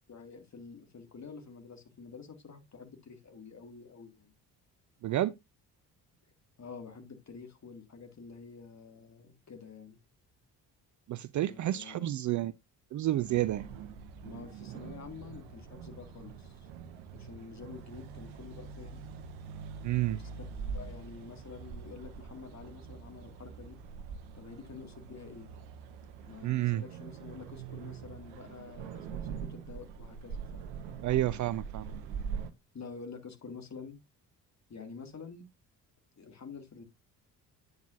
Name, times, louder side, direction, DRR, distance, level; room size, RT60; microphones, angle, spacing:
voice 1, 0.0-4.3 6.6-10.0 11.4-12.1 14.2-16.7 17.1-19.0 20.1-20.4 20.7-23.8 24.3-25.5 26.3-30.8 32.7-34.0 34.7-35.4 36.2-36.8, left 5 dB, 35° left, 2.4 m, -48 dB
voice 2, 5.0-5.3 11.1-12.5 12.9-13.7 19.8-20.2 26.4-26.8 31.0-31.9, right 14 dB, 40° right, 0.5 m, -30 dB
sound 1, 13.2-32.5, right 6 dB, 65° right, 1.1 m, -44 dB
9.2 x 7.7 x 2.6 m
figure-of-eight pair, 45°, 49 cm